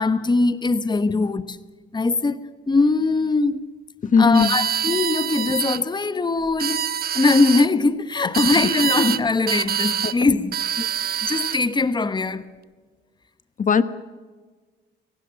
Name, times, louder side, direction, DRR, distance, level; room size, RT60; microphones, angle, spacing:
voice 1, 0.0-1.6 1.9-3.7 4.2-6.8 7.1-10.9 11.2-12.5, left 3 dB, 20° left, 1.2 m, -21 dB
voice 2, 4.0-4.5 8.4-8.7 10.0-10.3 13.6-13.8, left 5 dB, 40° left, 1.2 m, -19 dB
sound 1, 4.3-5.8 6.5-7.7 8.3-9.2 9.5-10.2 10.5-11.6, right 9 dB, 50° right, 0.7 m, -25 dB
30.0 x 16.5 x 8.9 m
cardioid pair, 90°, 20 cm